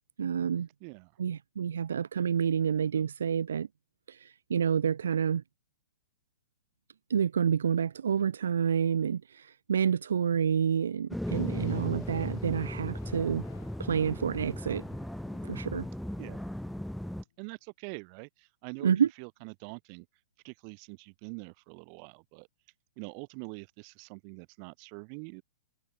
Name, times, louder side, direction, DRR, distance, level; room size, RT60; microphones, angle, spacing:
voice 1, 0.2-0.7 1.2-3.7 4.1-5.4 7.1-13.5 13.8-14.8 15.4-15.9 18.8-19.1, right 7 dB, 85° right, 1.1 m, -28 dB
voice 2, 0.8-1.1 16.2-16.5 17.4-18.9 19.2-20.1 20.4-22.5 23.0-25.4, right 40 dB or more, 35° right, 7.0 m, -44 dB
sound 1, 11.1-17.2, equal, ahead, 0.3 m, -36 dB
sound 2, 11.3-17.3, left 12 dB, 55° left, 6.4 m, -58 dB
hypercardioid pair, 160°, 0 cm